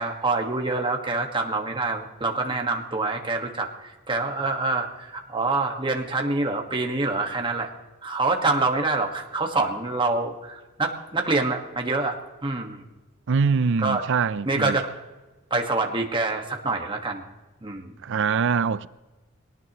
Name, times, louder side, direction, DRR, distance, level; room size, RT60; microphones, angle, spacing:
voice 1, 0.0-7.7 8.0-12.8 13.8-14.0 14.4-14.9 15.5-17.2 17.6-17.9, right 3 dB, 25° right, 1.6 m, -26 dB
voice 2, 13.3-14.8 18.0-18.9, right 5 dB, 60° right, 0.5 m, -23 dB
22.0 x 18.5 x 3.1 m
head